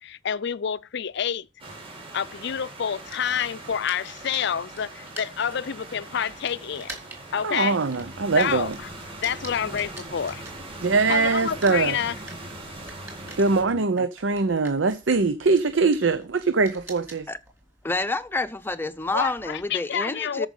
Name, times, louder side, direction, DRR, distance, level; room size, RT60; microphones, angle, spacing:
voice 1, 0.0-1.5 2.1-7.0 7.3-7.8 8.4-8.7 9.2-10.4 11.1-12.1 19.1-20.5, left 8 dB, 65° left, 0.5 m, -28 dB
sound 1, 1.6-13.6, right 2 dB, 30° right, 4.1 m, -41 dB
sound 2, 2.9-11.1 11.4-19.7, right 2 dB, 15° right, 3.4 m, -46 dB
voice 2, 7.4-8.7 10.8-12.0 13.4-17.3, right 4 dB, 75° right, 0.7 m, -22 dB
sound 3, 7.9-13.8, left 1 dB, 50° right, 3.4 m, -46 dB
voice 3, 17.8-20.5, left 2 dB, 10° left, 0.7 m, -28 dB
13.5 x 5.2 x 5.5 m
head